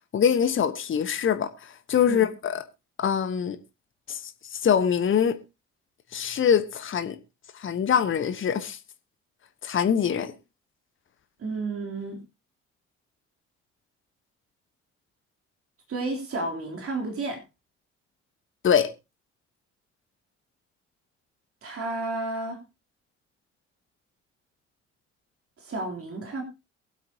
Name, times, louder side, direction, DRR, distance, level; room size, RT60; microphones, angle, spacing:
voice 1, 0.1-2.6 3.0-3.6 4.1-4.2 4.5-5.4 6.1-7.2 7.6-8.8 9.6-10.3 18.6-18.9, left 8 dB, 35° left, 1.2 m, -24 dB
voice 2, 11.4-12.2 15.9-17.4 21.6-22.6 25.6-26.4, right 2 dB, 40° right, 3.4 m, -31 dB
22.5 x 8.5 x 2.9 m
figure-of-eight pair, 45°, 36 cm